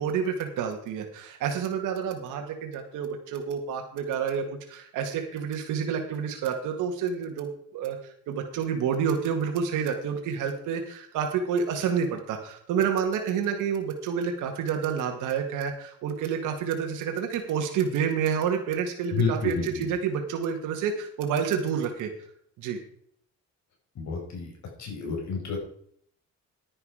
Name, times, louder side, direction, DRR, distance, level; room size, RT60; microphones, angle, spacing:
voice 1, 0.0-22.1 22.6-22.8, right 7 dB, 90° right, 4 dB, 1.9 m, -29 dB
voice 2, 19.1-19.9 24.0-24.5 24.8-25.6, left 5 dB, 65° left, 1 dB, 5.3 m, -30 dB
11.0 x 9.7 x 4.9 m, 0.62 s
cardioid pair, 90°, 30 cm